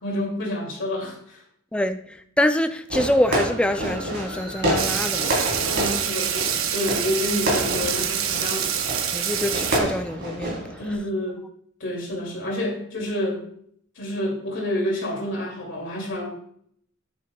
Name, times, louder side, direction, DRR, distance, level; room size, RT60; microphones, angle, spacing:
voice 1, 0.0-1.4 5.7-8.7 10.8-11.4 11.8-13.4 14.0-16.3, left 1 dB, 60° left, 2.6 m, -28 dB
voice 2, 1.7-5.4 9.1-10.8, left 1 dB, 5° left, 0.4 m, -25 dB
Fireworks, 2.9-11.0, right 1 dB, 60° right, 3.7 m, -28 dB
sound 1, 4.8-9.8, right 8 dB, 85° right, 0.8 m, -26 dB
9.4 x 8.8 x 2.3 m
head